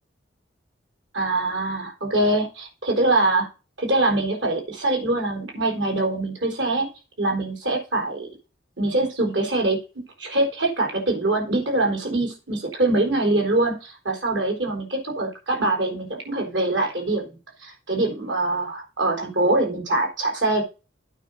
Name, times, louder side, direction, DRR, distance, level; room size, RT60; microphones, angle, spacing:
voice 1, 1.1-3.5 3.8-6.9 7.2-8.3 8.8-9.8 10.2-20.6, right 2 dB, 65° right, 1 dB, 4.1 m, -23 dB
9.0 x 5.4 x 6.4 m, 0.30 s
head